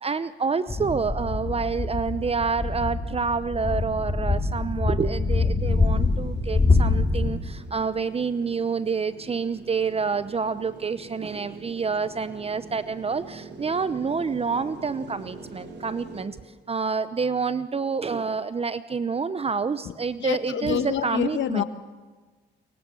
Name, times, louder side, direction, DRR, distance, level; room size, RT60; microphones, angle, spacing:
voice 1, 0.0-16.4 16.7-21.6, right 5 dB, 30° right, 13 dB, 0.9 m, -28 dB
sound 1, 0.7-7.3, left 3 dB, 25° left, 4.2 m, -24 dB
sound 2, 5.6-16.3, right 3 dB, 60° right, 4.4 m, -44 dB
voice 2, 20.2-21.6, left 9 dB, 70° left, 10 dB, 1.8 m, -27 dB
29.0 x 23.5 x 7.1 m, 1.3 s
cardioid pair, 90°, 20 cm